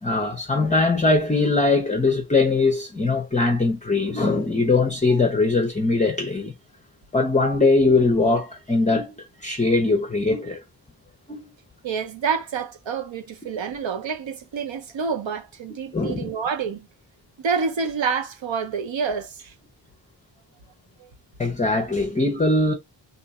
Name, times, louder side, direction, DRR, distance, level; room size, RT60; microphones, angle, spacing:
voice 1, 0.0-6.5 7.1-10.6 11.3-11.5 15.9-16.3 21.4-22.7, left 3 dB, 15° left, 0.5 m, -21 dB
voice 2, 11.8-16.9 17.4-19.5 21.0-21.1, right 5 dB, 70° right, 0.8 m, -28 dB
2.7 x 2.5 x 4.1 m
wide cardioid pair, 135°, 48 cm